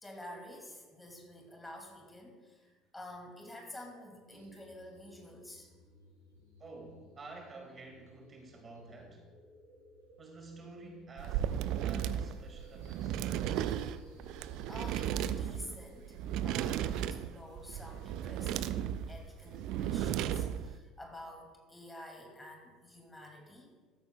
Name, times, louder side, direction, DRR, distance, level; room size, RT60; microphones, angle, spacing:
voice 1, 0.0-5.7 14.7-23.7, left 1 dB, 10° left, 1 dB, 2.3 m, -49 dB
sound 1, 4.3-21.4, right 1 dB, 80° right, 3.4 m, -60 dB
voice 2, 6.6-9.3 10.2-13.3, right 2 dB, 30° right, 2 dB, 2.0 m, -50 dB
sound 2, 11.2-20.8, right 10 dB, 55° right, 0.4 m, -35 dB
13.5 x 13.0 x 2.3 m, 1.4 s
figure-of-eight pair, 60°, 0 cm